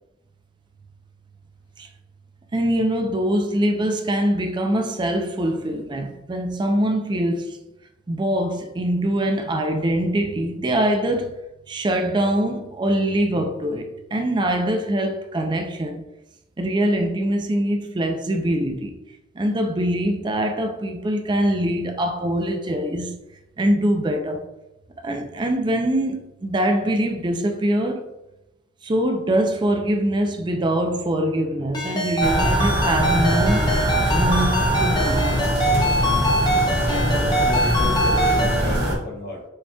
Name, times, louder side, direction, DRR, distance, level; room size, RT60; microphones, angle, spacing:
voice 1, 2.5-7.6 8.1-11.4 11.7-16.0 16.6-18.9 19.4-23.1 23.6-24.5 25.0-28.1 28.8-33.7 34.1-35.3, right 1 dB, 25° right, 0.4 m, -23 dB
Ringtone, 31.7-38.6, equal, 25° left, 0.6 m, -23 dB
sound 1, 32.2-39.0, equal, 60° right, 1.2 m, -22 dB
voice 2, 36.9-39.4, left 1 dB, 55° left, 0.9 m, -32 dB
6.4 x 2.9 x 2.2 m
head